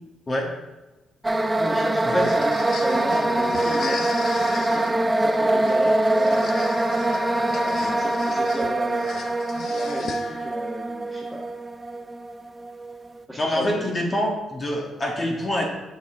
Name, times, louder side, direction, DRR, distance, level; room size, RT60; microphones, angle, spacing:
sound 1, 1.2-13.1, right 1 dB, 15° right, 0.5 m, -24 dB
voice 1, 1.6-4.1 4.5-6.7 7.6-9.0 9.8-11.4 13.3-13.8, equal, 5° left, -6 dB, 1.7 m, -33 dB
sound 2, 2.0-10.6, left 5 dB, 60° left, 0.7 m, -37 dB
voice 2, 13.4-15.6, left 1 dB, 30° left, -1 dB, 1.7 m, -25 dB
7.3 x 6.6 x 3.7 m, 1.1 s
cardioid pair, 90°, 0 cm